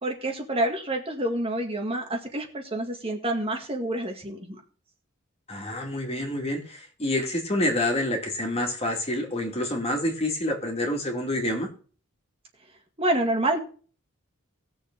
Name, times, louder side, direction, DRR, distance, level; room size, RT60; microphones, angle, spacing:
voice 1, 0.0-4.6 13.0-13.6, right 1 dB, 30° right, 2 dB, 2.0 m, -28 dB
voice 2, 5.5-11.7, left 1 dB, 30° left, 1 dB, 2.6 m, -27 dB
18.5 x 7.2 x 3.8 m, 0.40 s
head